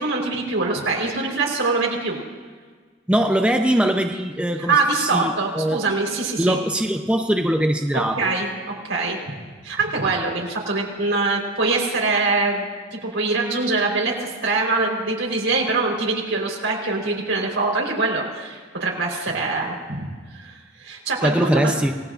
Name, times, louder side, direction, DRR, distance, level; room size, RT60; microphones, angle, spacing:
voice 1, 0.0-2.2 4.7-6.6 7.9-9.2 9.6-20.1 20.3-21.8, right 3 dB, 75° right, 0 dB, 4.2 m, -23 dB
voice 2, 3.1-5.8 6.4-8.3 21.2-21.9, right 1 dB, 5° right, 4 dB, 0.6 m, -21 dB
28.0 x 19.0 x 2.5 m, 1.5 s
head